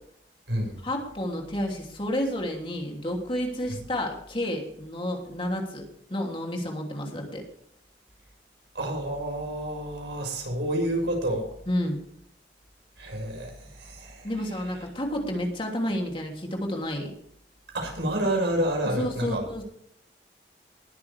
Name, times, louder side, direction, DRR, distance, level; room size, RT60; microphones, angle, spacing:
voice 1, 0.8-5.8 6.1-7.4 11.7-12.0 14.2-17.1 19.0-19.6, left 1 dB, 30° left, 1 dB, 3.0 m, -30 dB
voice 2, 8.7-11.5 13.0-14.3 17.7-19.4, right 1 dB, 80° right, 1 dB, 6.1 m, -29 dB
20.0 x 9.5 x 3.5 m, 0.66 s
head